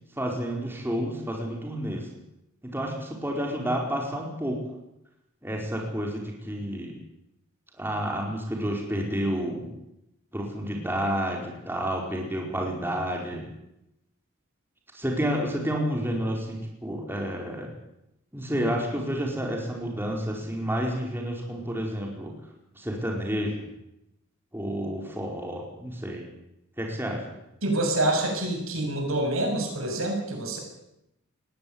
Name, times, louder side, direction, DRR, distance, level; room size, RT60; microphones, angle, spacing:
voice 1, 0.2-2.1 2.6-4.6 5.4-6.9 7.8-9.7 10.3-13.4 14.9-17.7 18.3-22.3 22.7-23.7 24.5-26.3 26.8-27.2, equal, 10° right, 0 dB, 4.8 m, -30 dB
voice 2, 27.6-30.6, right 1 dB, 75° right, 3 dB, 7.1 m, -26 dB
20.5 x 16.5 x 9.6 m, 0.86 s
head